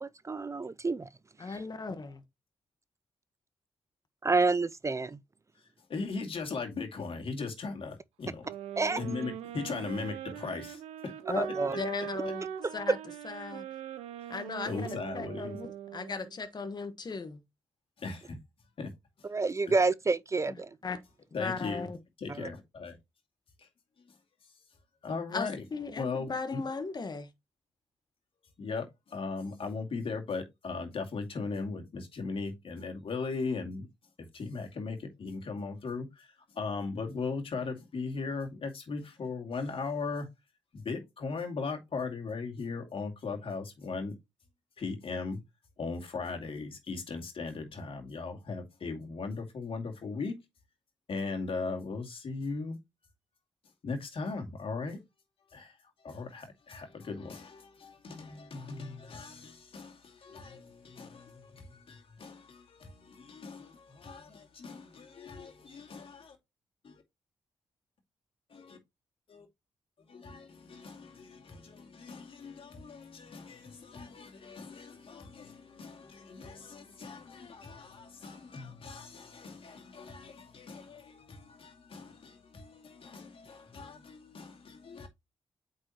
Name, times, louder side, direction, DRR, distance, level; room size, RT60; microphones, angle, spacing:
voice 1, 0.0-1.1 4.2-5.2 8.8-9.0 11.4-11.8 19.3-20.7 22.3-22.5, right 3 dB, 30° right, 0.4 m, -29 dB
voice 2, 1.4-2.1 11.3-11.5 11.8-12.5 12.7-13.0 13.2-13.7 14.3-17.4 20.5-20.6 20.8-21.0 21.4-22.0 25.3-27.3, left 4 dB, 40° left, 1.2 m, -37 dB
voice 3, 5.9-8.5 9.0-11.1 14.6-15.6 18.0-18.4 18.8-18.9 19.2-19.3 21.3-21.9 22.2-23.0 23.6-23.7 25.0-25.6 26.0-26.6 28.6-33.9 34.3-40.3 40.7-44.1 44.8-45.4 45.8-50.4 51.1-52.8 53.8-55.0 55.5-55.8 56.0-66.4 66.8-67.0 68.5-68.8 69.3-69.5 70.0-85.1, left 4 dB, 60° left, 2.4 m, -38 dB
sound 1, 8.4-16.4, right 10 dB, 90° right, 0.6 m, -41 dB
8.7 x 4.8 x 2.9 m
supercardioid pair, 45°, 10 cm